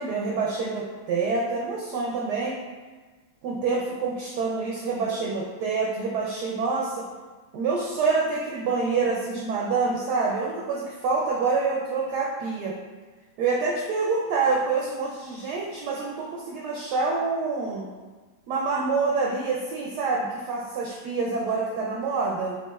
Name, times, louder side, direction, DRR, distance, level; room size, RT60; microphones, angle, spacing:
voice 1, 0.0-2.6 3.4-7.1 7.5-12.7 13.4-17.9 18.5-22.6, right 4 dB, 75° right, -2 dB, 1.0 m, -27 dB
5.1 x 3.5 x 2.3 m, 1.3 s
omnidirectional pair, 2.2 m